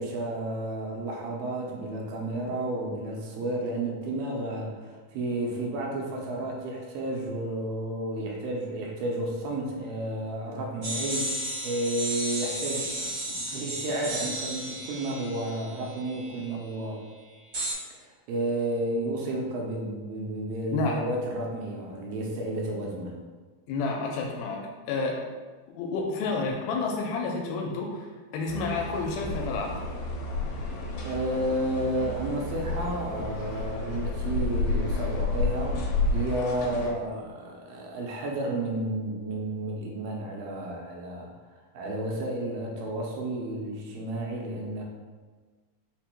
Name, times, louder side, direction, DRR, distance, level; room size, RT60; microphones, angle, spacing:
voice 1, 0.0-4.8 5.1-11.4 11.6-17.0 18.3-23.1 31.0-35.8 36.1-41.3 41.7-44.8, right 1 dB, 80° right, -1 dB, 2.5 m, -31 dB
sound 1, 10.8-16.5 17.5-17.7, right 1 dB, 50° right, 1.0 m, -34 dB
voice 2, 23.7-24.6 24.9-25.2 25.7-28.1 28.3-29.9, left 3 dB, 85° left, 0 dB, 2.4 m, -30 dB
sound 2, 28.5-36.9, left 2 dB, 70° left, 2.3 m, -31 dB
5.7 x 2.1 x 4.4 m, 1.4 s
omnidirectional pair, 4.2 m